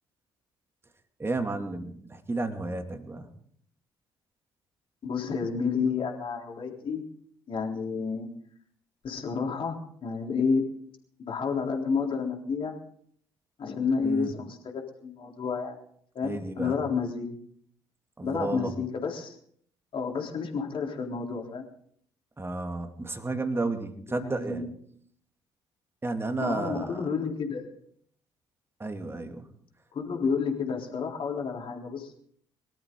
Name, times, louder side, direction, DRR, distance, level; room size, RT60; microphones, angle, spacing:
voice 1, 1.2-3.3 14.0-14.3 16.2-16.8 18.2-18.7 22.4-24.6 26.0-27.1 28.8-29.5, right 2 dB, 20° right, 6 dB, 2.5 m, -32 dB
voice 2, 5.0-7.0 7.5-8.3 9.0-10.6 11.3-12.7 13.6-15.7 16.2-17.3 18.2-19.4 19.9-21.6 24.1-24.7 26.4-27.7 29.9-32.1, left 5 dB, 45° left, 1 dB, 3.7 m, -30 dB
23.0 x 13.0 x 3.9 m, 0.63 s
figure-of-eight pair, 45°, 12 cm